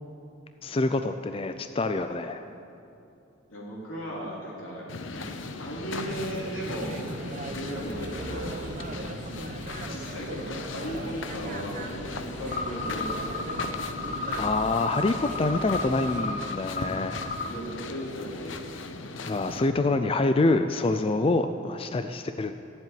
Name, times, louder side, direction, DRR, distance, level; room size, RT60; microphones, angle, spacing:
voice 1, 0.6-2.5 14.4-17.2 19.3-22.5, left 2 dB, 30° left, 8 dB, 0.4 m, -26 dB
voice 2, 3.5-4.9 5.1-5.2 5.6-7.0 7.5-8.6 9.9-14.0 17.4-18.6, equal, 90° left, -4 dB, 3.6 m, -36 dB
sound 1, 4.9-19.7, left 3 dB, 70° left, 0.8 m, -39 dB
sound 2, 6.0-16.2, right 2 dB, 40° right, 0.8 m, -39 dB
sound 3, 12.5-17.5, left 3 dB, 45° left, 0.8 m, -33 dB
13.5 x 7.6 x 9.2 m, 2.7 s
head